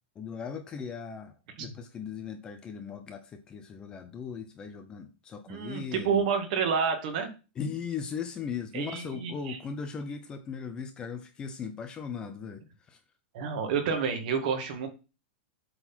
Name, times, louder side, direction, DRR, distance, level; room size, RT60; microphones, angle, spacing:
voice 1, 0.2-1.3 1.6-6.2 7.6-12.6 12.9-13.0, left 6 dB, 15° left, 0.6 m, -38 dB
voice 2, 5.5-7.3 8.7-9.6 13.3-14.9, right 6 dB, 45° right, 2.0 m, -29 dB
8.0 x 4.0 x 6.0 m
supercardioid pair, 175°, 6 cm